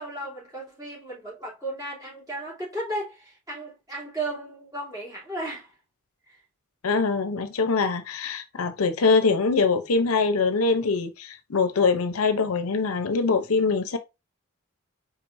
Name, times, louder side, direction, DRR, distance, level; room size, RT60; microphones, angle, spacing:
voice 1, 0.0-5.7 6.2-6.4, right 1 dB, 15° right, 2.9 m, -35 dB
voice 2, 6.8-14.0, left 4 dB, 80° left, 0.7 m, -23 dB
4.6 x 4.0 x 2.6 m
head